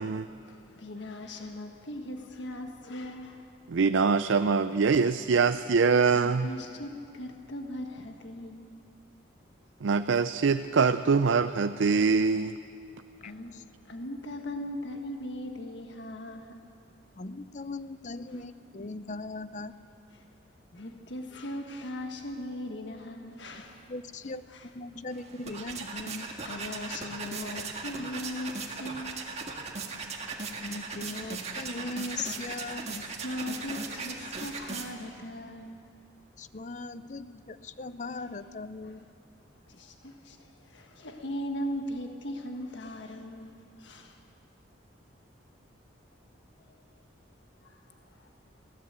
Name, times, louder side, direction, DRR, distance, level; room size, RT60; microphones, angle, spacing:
voice 1, 0.4-3.5 6.1-8.7 13.2-13.5 13.8-16.6 20.1-20.2 20.7-23.9 24.2-24.7 26.4-29.7 32.4-35.8 38.8-38.9 39.7-44.2 46.7-46.8 47.6-48.0, left 1 dB, 65° left, 4 dB, 1.6 m, -39 dB
voice 2, 3.7-6.5 9.8-12.5, right 5 dB, 70° right, 11 dB, 0.5 m, -24 dB
voice 3, 13.2-13.6 17.2-19.7 23.9-24.4 24.7-26.3 30.6-32.9 36.4-39.1, left 3 dB, 40° left, 13 dB, 0.6 m, -39 dB
sound 1, 25.1-35.2, right 4 dB, 35° right, 1.8 m, -38 dB
23.5 x 17.0 x 8.1 m, 2.5 s
head